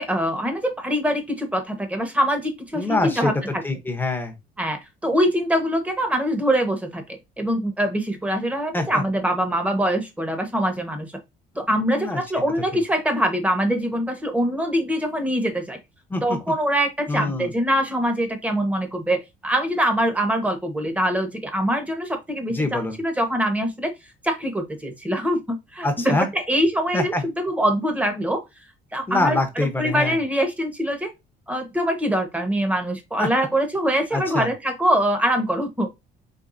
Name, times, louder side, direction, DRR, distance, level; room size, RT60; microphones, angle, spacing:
voice 1, 0.0-3.3 4.6-11.2 11.5-15.8 16.2-23.9 24.2-27.1 27.5-28.4 28.9-31.1 31.5-35.9, equal, 10° right, 1.3 m, -23 dB
voice 2, 2.7-4.3 8.7-9.0 11.9-12.2 16.1-16.5 17.1-17.5 22.5-23.0 25.8-26.3 26.9-27.2 29.1-30.2 33.2-33.3 34.1-34.5, left 2 dB, 10° left, 1.0 m, -25 dB
4.7 x 3.3 x 2.6 m
cardioid pair, 110°, 17 cm